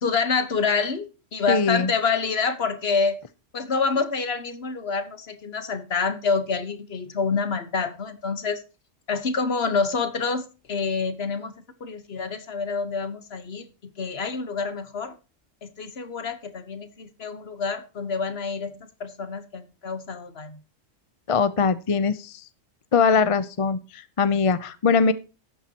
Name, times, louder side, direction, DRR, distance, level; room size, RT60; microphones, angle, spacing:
voice 1, 0.0-3.2 3.5-8.6 9.1-11.5 11.8-15.1 15.6-18.7 19.0-20.6, left 4 dB, 55° left, 1.4 m, -27 dB
voice 2, 1.5-1.9 21.3-22.4 22.9-25.1, left 5 dB, 35° left, 0.6 m, -21 dB
12.5 x 9.1 x 2.9 m
omnidirectional pair, 1.3 m